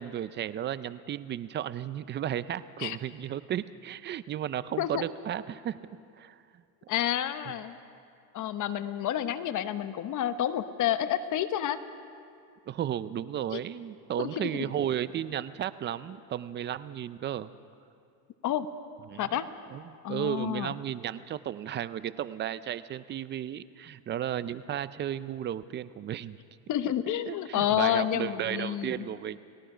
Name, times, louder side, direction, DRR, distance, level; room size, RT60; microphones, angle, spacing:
voice 1, 0.0-5.8 6.2-6.6 7.5-7.6 12.7-17.5 19.1-19.3 19.7-26.4 27.3-29.4, right 10 dB, 25° right, 15 dB, 0.4 m, -34 dB
voice 2, 6.9-7.8 8.3-11.8 13.5-13.6 14.2-14.5 18.4-18.7 19.2-19.5 20.0-20.7 26.7-29.1, left 11 dB, 40° left, 11 dB, 1.1 m, -29 dB
29.5 x 18.5 x 5.0 m, 2.4 s
supercardioid pair, 120°, 48 cm